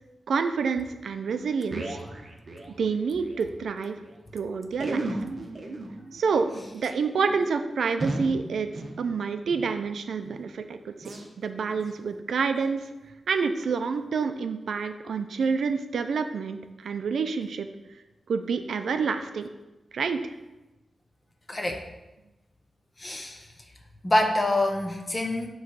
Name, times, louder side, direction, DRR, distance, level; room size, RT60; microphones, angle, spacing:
voice 1, 0.3-2.0 2.8-4.0 4.3-5.2 6.1-12.8 13.3-17.7 18.3-19.5 19.9-20.3, right 5 dB, 75° right, 8 dB, 0.5 m, -28 dB
sound 1, 1.3-3.4 3.7-3.8 4.0-4.1 4.7-9.8 10.2-10.5 11.0-11.3 11.8-12.0 12.5-12.7 13.3-13.4, right 2 dB, 35° right, 0.9 m, -36 dB
voice 2, 21.5-21.8 23.0-23.5 24.0-25.5, left 1 dB, 20° left, 4 dB, 0.7 m, -26 dB
8.1 x 3.1 x 6.2 m, 1.1 s
wide cardioid pair, 175°, 0 cm